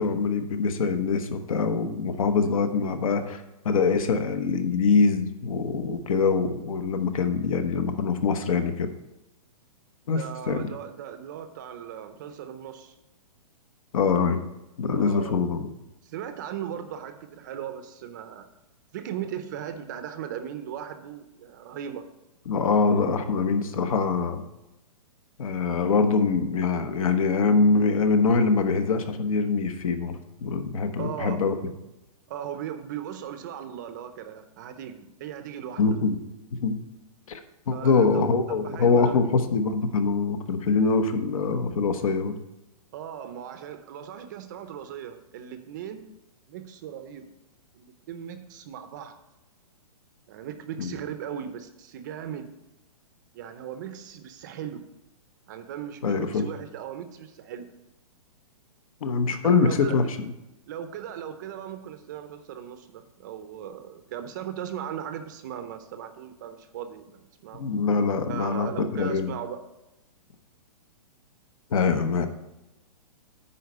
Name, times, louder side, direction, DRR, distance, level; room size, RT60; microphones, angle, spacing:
voice 1, 0.0-8.9 10.1-10.6 13.9-14.4 14.8-15.6 22.5-24.4 25.4-31.6 35.8-36.2 36.5-36.8 37.3-37.4 37.7-42.3 50.8-50.9 56.0-56.5 59.0-60.3 67.6-69.3 71.7-72.3, left 4 dB, 60° left, 8 dB, 1.1 m, -24 dB
voice 2, 10.1-12.9 14.9-15.4 16.0-18.5 18.9-22.0 23.2-23.3 31.0-31.4 32.3-36.0 37.7-39.2 42.9-46.1 46.5-47.3 47.7-49.2 50.3-52.5 53.3-54.8 55.5-57.7 59.4-60.1 60.7-67.6 68.3-69.6, right 9 dB, 30° right, 9 dB, 0.6 m, -38 dB
9.6 x 4.3 x 6.6 m, 0.93 s
hypercardioid pair, 165°, 19 cm